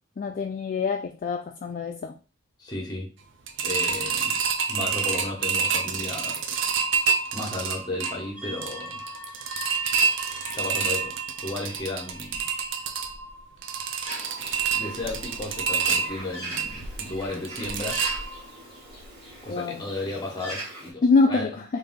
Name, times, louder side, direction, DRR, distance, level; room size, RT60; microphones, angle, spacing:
voice 1, 0.2-2.1 19.5-19.8 21.0-21.6, left 4 dB, 45° left, 3 dB, 0.3 m, -24 dB
voice 2, 2.6-3.1 3.6-4.4 4.7-6.4 7.3-9.0 10.5-11.1 11.4-12.4 14.7-18.0 19.4-21.6, left 2 dB, 20° left, 0 dB, 1.1 m, -34 dB
sound 1, 3.5-18.6 19.0-19.1 19.5-19.6, right 6 dB, 75° right, 0.5 m, -28 dB
sound 2, 8.4-12.8, left 1 dB, 10° right, 0.8 m, -42 dB
Bird, 14.0-20.9, right 1 dB, 35° right, 1.7 m, -41 dB
3.3 x 2.6 x 3.7 m, 0.34 s
head